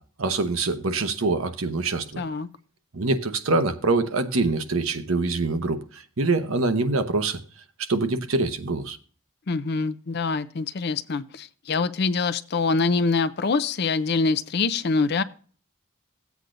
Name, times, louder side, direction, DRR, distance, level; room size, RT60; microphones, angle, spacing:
voice 1, 0.0-2.2 2.9-7.4 7.8-9.0, right 3 dB, 70° right, 0.9 m, -25 dB
voice 2, 2.2-2.5 9.5-15.2, left 4 dB, 50° left, 0.5 m, -25 dB
14.5 x 8.1 x 2.6 m
head